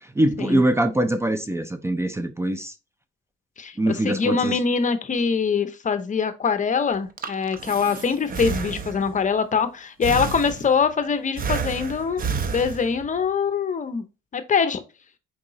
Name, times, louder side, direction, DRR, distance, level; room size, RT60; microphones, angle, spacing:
voice 1, 0.0-2.7 3.8-4.6, right 1 dB, 15° right, 0.5 m, -23 dB
voice 2, 3.6-12.2 12.5-14.0 14.3-14.8, left 5 dB, 40° left, 0.7 m, -23 dB
Breathing, 6.9-9.2 10.0-10.9 11.4-13.2, right 5 dB, 45° right, 0.7 m, -30 dB
4.7 x 3.6 x 3.0 m
cardioid pair, 90°, 20 cm